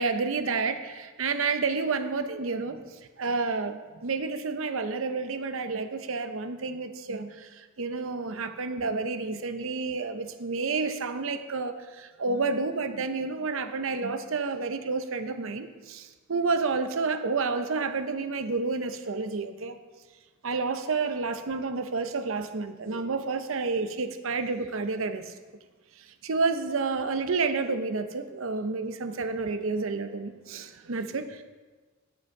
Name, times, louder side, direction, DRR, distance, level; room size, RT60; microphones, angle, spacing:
voice 1, 0.0-2.8 3.2-19.8 20.4-25.3 26.0-31.4, right 4 dB, 75° right, 9 dB, 0.7 m, -30 dB
10.5 x 7.3 x 4.7 m, 1.3 s
head